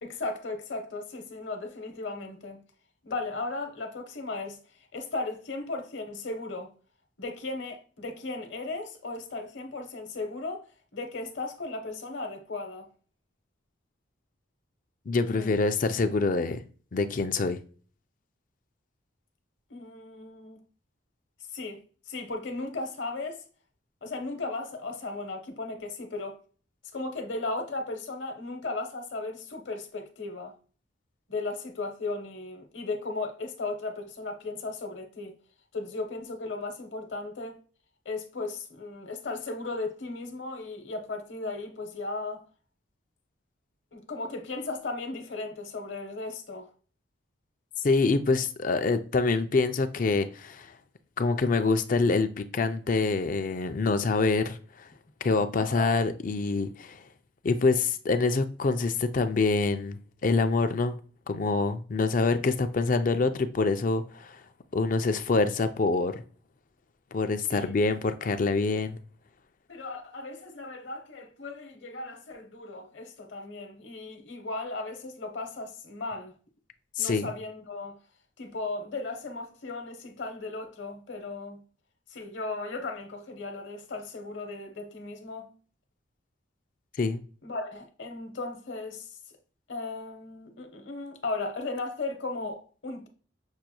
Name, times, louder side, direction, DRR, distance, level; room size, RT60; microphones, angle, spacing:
voice 1, 0.0-2.6 3.0-4.6 4.9-6.7 7.2-10.6 10.9-12.9 15.3-15.5 19.7-20.6 21.5-21.8 22.1-23.4 24.0-26.4 26.9-30.5 31.3-35.3 35.7-37.5 38.0-42.4 43.9-46.7 55.5-56.0 67.5-67.7 69.7-76.3 77.0-78.0 78.4-81.6 82.1-85.5 87.4-89.1 89.7-93.1, left 3 dB, 70° left, 0.9 m, -36 dB
voice 2, 15.1-16.6 16.9-17.6 47.8-50.7 51.2-54.6 55.2-57.0 57.4-61.0 61.3-64.4 64.7-66.2 67.1-69.0 77.0-77.3 87.0-87.2, left 3 dB, 40° left, 0.4 m, -26 dB
6.4 x 2.9 x 2.3 m
head